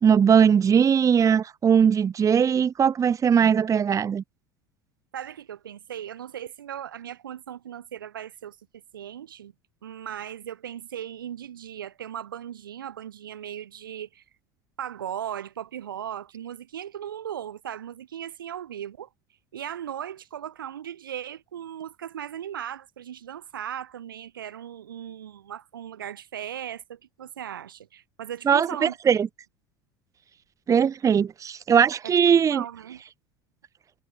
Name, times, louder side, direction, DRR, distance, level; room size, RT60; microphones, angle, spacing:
voice 1, 0.0-4.2 28.5-29.3 30.7-32.6, right 7 dB, 30° right, 1.4 m, -20 dB
voice 2, 5.1-8.6 8.9-9.5 9.8-14.2 14.8-19.1 19.5-29.2 32.0-32.1 32.5-33.0, right 10 dB, 85° right, 7.7 m, -37 dB
hypercardioid pair, 80°, 11 cm